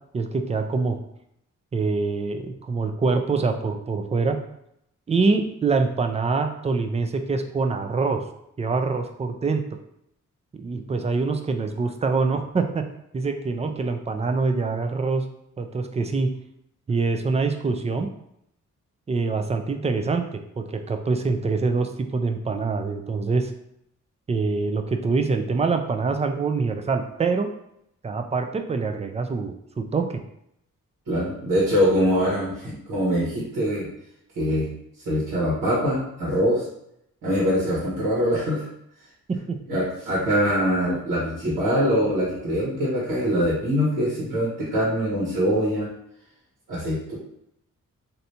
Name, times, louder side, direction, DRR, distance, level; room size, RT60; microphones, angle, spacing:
voice 1, 0.1-1.0 1.7-4.4 5.1-8.2 8.6-9.6 10.5-12.9 13.1-15.2 15.6-16.3 16.9-18.1 19.1-23.5 24.3-27.5 28.0-30.2, right 4 dB, 20° right, 6 dB, 0.3 m, -25 dB
voice 2, 31.1-33.9 34.4-34.7 35.0-36.6 37.2-38.7 39.7-45.9 46.7-47.2, equal, 85° right, -7 dB, 1.3 m, -23 dB
3.2 x 2.7 x 2.7 m, 0.77 s
cardioid pair, 75°, 32 cm